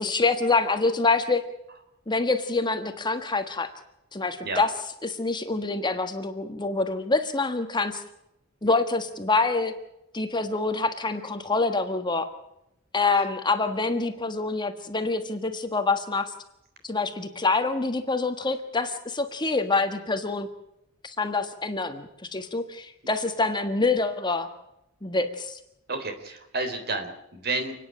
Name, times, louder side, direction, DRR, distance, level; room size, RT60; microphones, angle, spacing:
voice 1, 0.0-1.4 2.1-3.7 4.1-4.7 5.0-8.0 8.6-9.7 10.1-12.3 12.9-16.3 16.8-20.5 21.0-24.5 25.0-25.6, left 3 dB, 20° left, 8 dB, 1.5 m, -26 dB
voice 2, 25.9-27.7, right 3 dB, 50° right, 7 dB, 3.9 m, -30 dB
30.0 x 10.0 x 10.0 m, 0.82 s
head